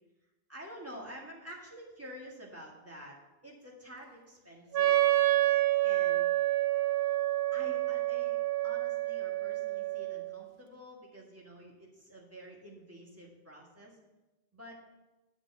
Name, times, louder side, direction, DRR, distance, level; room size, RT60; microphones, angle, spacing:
voice 1, 0.5-5.0 5.8-6.3 7.5-14.0 14.5-14.8, equal, 15° right, -2 dB, 1.9 m, -49 dB
Wind instrument woodwind instrument, 4.7-10.4, right 15 dB, 65° right, 0.8 m, -28 dB
8.7 x 5.2 x 7.2 m, 1.0 s
omnidirectional pair, 1.1 m